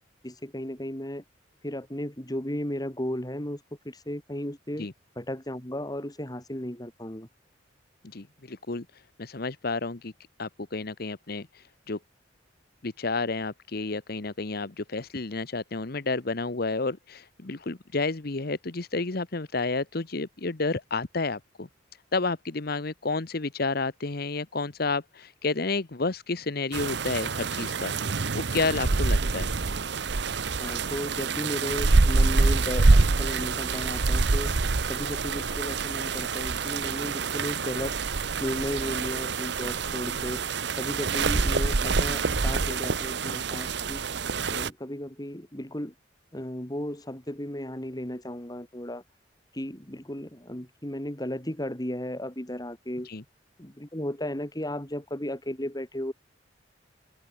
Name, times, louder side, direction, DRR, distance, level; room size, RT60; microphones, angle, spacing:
voice 1, 0.2-1.2 1.6-4.9 5.2-7.3 30.6-34.5 34.9-37.9 38.4-40.4 40.7-44.0 44.5-45.9 46.3-49.0 49.5-53.1 53.6-56.1, left 1 dB, 20° left, 2.8 m, -35 dB
voice 2, 8.0-8.8 9.2-10.1 10.4-12.0 12.8-21.7 22.1-29.5 53.0-53.2, left 3 dB, 55° left, 1.1 m, -31 dB
sound 1, 26.7-44.7, right 3 dB, 65° right, 0.9 m, -26 dB
head